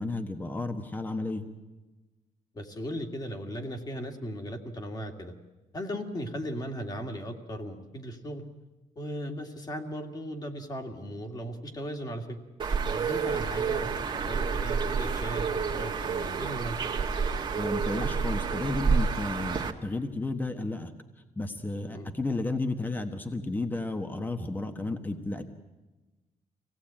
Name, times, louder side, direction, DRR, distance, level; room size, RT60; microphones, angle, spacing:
voice 1, 0.0-1.5 17.5-20.9 21.4-25.4, left 2 dB, 15° left, 7 dB, 1.3 m, -32 dB
voice 2, 2.5-5.3 5.7-8.4 9.0-12.4 12.9-16.8 21.9-22.1, equal, 30° left, 5 dB, 2.2 m, -37 dB
Bird, 12.6-19.7, right 5 dB, 35° right, 1.6 m, -29 dB
24.5 x 17.5 x 8.8 m, 1.2 s
cardioid pair, 135°, 13 cm